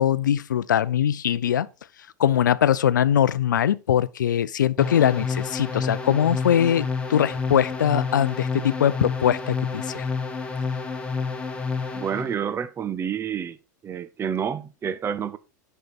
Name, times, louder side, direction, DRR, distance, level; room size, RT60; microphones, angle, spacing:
voice 1, 0.0-1.7 2.2-10.1, left 10 dB, 80° left, 0.5 m, -22 dB
sound 1, 4.8-12.3, left 4 dB, 10° left, 1.8 m, -29 dB
voice 2, 11.9-13.6 13.8-15.4, right 8 dB, 25° right, 0.7 m, -29 dB
10.5 x 5.5 x 4.4 m
hypercardioid pair, 95°, 10 cm